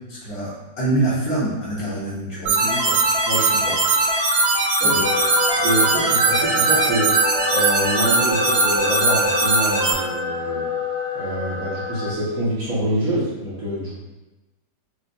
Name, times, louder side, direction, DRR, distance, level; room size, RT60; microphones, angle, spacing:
voice 1, 0.0-3.0 4.8-5.0, right 2 dB, 55° left, -8 dB, 1.8 m, -25 dB
sound 1, 2.5-9.9, right 3 dB, 85° right, 0.5 m, -20 dB
voice 2, 3.3-3.8 4.8-5.2 5.6-7.1 7.5-10.7 11.1-14.0, right 1 dB, 50° right, -8 dB, 1.4 m, -25 dB
sound 2, 5.0-12.1, left 3 dB, 80° left, 0.6 m, -28 dB
6.6 x 2.4 x 2.3 m, 1.1 s
omnidirectional pair, 2.0 m